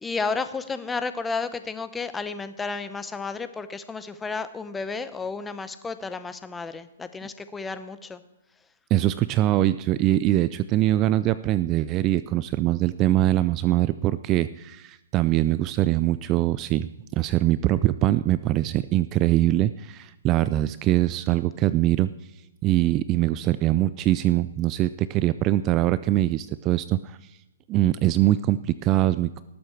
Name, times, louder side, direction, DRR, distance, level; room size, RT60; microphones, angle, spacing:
voice 1, 0.0-8.2, left 4 dB, 10° left, 11 dB, 0.7 m, -32 dB
voice 2, 8.9-22.1 22.6-27.3 27.7-29.4, right 14 dB, 25° right, 15 dB, 0.3 m, -23 dB
19.0 x 7.7 x 4.5 m, 0.96 s
hypercardioid pair, 145°, 0 cm